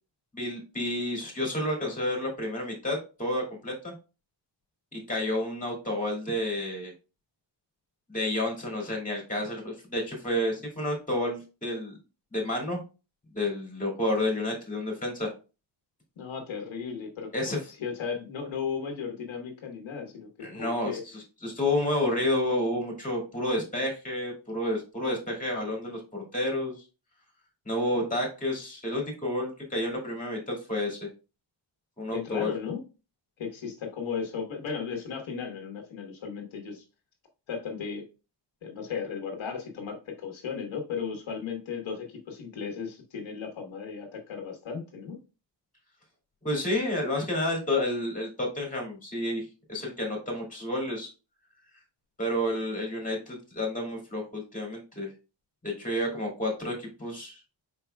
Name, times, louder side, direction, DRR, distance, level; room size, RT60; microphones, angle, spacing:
voice 1, 0.3-3.9 4.9-6.9 8.1-11.9 12.3-12.8 13.3-15.3 17.3-17.6 20.4-26.8 27.6-31.1 32.0-32.5 46.4-51.1 52.2-55.1 55.6-57.4, left 1 dB, 15° left, 0 dB, 2.4 m, -30 dB
voice 2, 16.2-21.0 32.1-32.8 33.4-36.8 37.5-38.1 38.6-45.2, left 6 dB, 80° left, 2 dB, 1.3 m, -35 dB
5.1 x 4.6 x 2.2 m, 0.31 s
wide cardioid pair, 115°, 46 cm